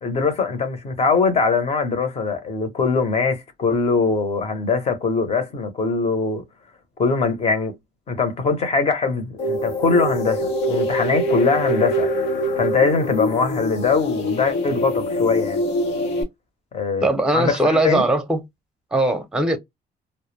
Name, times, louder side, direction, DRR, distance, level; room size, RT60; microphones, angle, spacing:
voice 1, 0.0-6.4 7.0-7.7 8.1-12.1 12.6-15.6 16.7-18.1, left 4 dB, 40° left, 0.8 m, -22 dB
sound 1, 9.4-16.2, equal, 85° left, 0.8 m, -24 dB
voice 2, 17.0-18.4 18.9-19.6, right 1 dB, 5° right, 0.7 m, -20 dB
2.1 x 2.1 x 3.1 m
cardioid pair, 110°, 17 cm